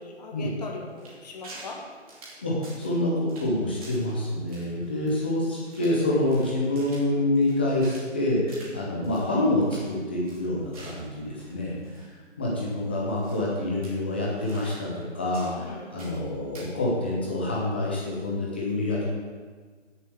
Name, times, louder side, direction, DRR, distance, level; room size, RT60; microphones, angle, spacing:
voice 1, 0.0-1.8 15.5-16.0, left 3 dB, 35° left, 0 dB, 1.5 m, -39 dB
sound 1, 1.0-1.8 2.1-3.0 3.3-3.5 3.8-4.1 4.5-6.0 6.3-8.1 8.5-8.7 9.0-9.2 9.5-9.9 10.2-12.1 12.4-12.5 13.2-13.5 13.8-15.0 15.3-16.2 16.5-16.7, right 2 dB, 30° right, 2.6 m, -48 dB
voice 2, 2.4-11.7 12.4-19.1, left 1 dB, 10° left, -4 dB, 0.7 m, -27 dB
16.5 x 6.8 x 3.6 m, 1.5 s
hypercardioid pair, 165°, 37 cm